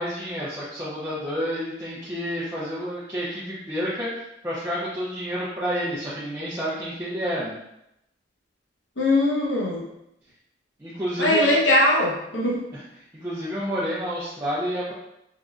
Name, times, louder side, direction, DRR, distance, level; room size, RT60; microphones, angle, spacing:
voice 1, 0.0-4.1 4.4-7.6 10.8-11.5 12.7-12.8 13.1-14.9, equal, 15° right, -9 dB, 0.4 m, -29 dB
voice 2, 9.0-9.8 11.2-12.6, left 1 dB, 85° left, -3 dB, 0.9 m, -20 dB
3.7 x 2.2 x 2.3 m, 0.83 s
head